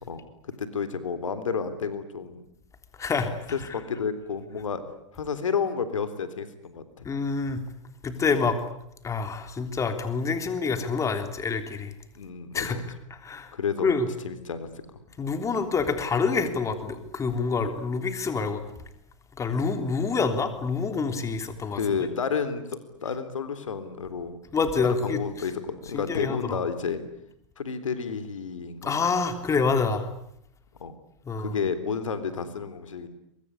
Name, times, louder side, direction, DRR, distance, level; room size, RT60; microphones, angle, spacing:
voice 1, 0.0-2.4 3.5-4.8 5.1-7.1 12.2-12.9 13.5-13.9 14.2-14.7 21.8-24.4 24.8-27.0 27.6-28.9 30.8-30.9 31.4-33.1, left 6 dB, 90° left, 12 dB, 3.5 m, -31 dB
voice 2, 3.0-3.3 7.1-7.6 8.0-8.6 9.0-11.9 12.5-12.8 13.1-13.5 13.8-14.1 15.2-18.6 19.4-21.8 24.5-25.2 25.9-26.6 28.8-30.1 31.3-31.6, left 4 dB, 20° left, 8 dB, 3.4 m, -27 dB
23.5 x 23.0 x 9.9 m, 0.76 s
hypercardioid pair, 115°, 16 cm